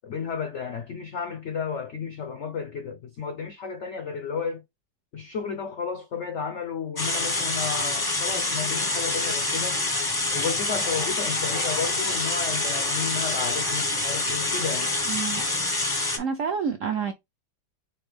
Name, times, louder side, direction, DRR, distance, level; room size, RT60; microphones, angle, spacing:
voice 1, 0.0-4.6 5.1-9.8 10.3-14.9, left 6 dB, 85° left, 0.6 m, -32 dB
sound 1, 7.0-16.2, left 2 dB, 25° left, 0.5 m, -26 dB
voice 2, 15.0-15.4 16.2-17.1, right 6 dB, 75° right, 0.7 m, -28 dB
4.3 x 3.4 x 3.4 m
omnidirectional pair, 2.0 m